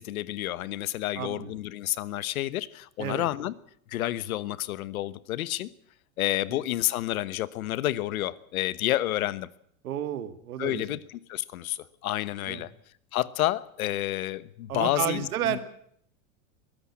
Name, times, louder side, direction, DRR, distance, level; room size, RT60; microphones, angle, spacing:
voice 1, 0.0-3.5 3.9-5.7 6.2-9.5 10.6-11.0 11.3-12.7 13.1-15.6, left 15 dB, 80° left, 1.2 m, -29 dB
voice 2, 1.1-1.5 3.0-3.3 6.5-6.6 9.8-11.0 12.5-12.7 14.7-15.6, right 11 dB, 85° right, 2.1 m, -32 dB
22.0 x 13.5 x 8.6 m
supercardioid pair, 150°, 42 cm